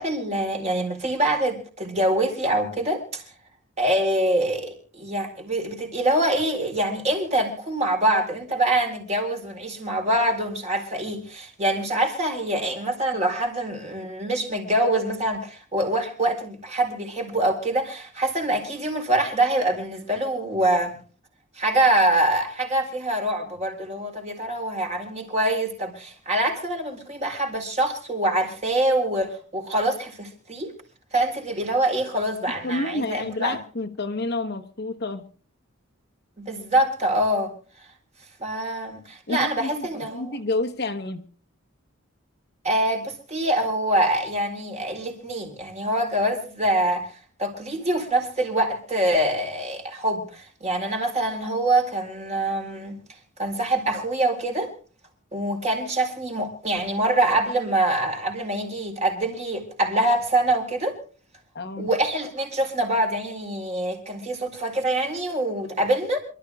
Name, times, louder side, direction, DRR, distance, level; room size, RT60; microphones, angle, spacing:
voice 1, 0.0-3.2 3.8-21.0 21.6-30.7 31.1-33.6 36.4-37.5 38.4-40.4 42.6-47.1 47.4-53.0 53.4-54.7 55.3-61.0 61.8-66.2, right 1 dB, 35° right, 4.1 m, -25 dB
voice 2, 32.6-35.2 39.3-39.9 40.1-41.2 61.5-61.9, left 2 dB, 50° left, 1.2 m, -29 dB
27.5 x 13.0 x 2.4 m
head